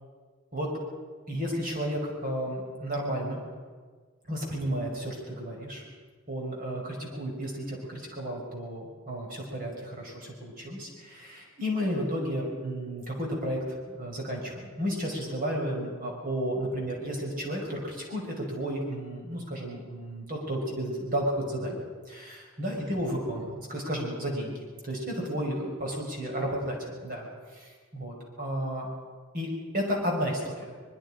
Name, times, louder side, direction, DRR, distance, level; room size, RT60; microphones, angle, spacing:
voice 1, 1.3-3.4 4.3-5.8 6.3-24.5 24.8-28.9 29.3-30.7, equal, 40° right, -1 dB, 5.4 m, -32 dB
24.5 x 22.5 x 5.1 m, 1.5 s
head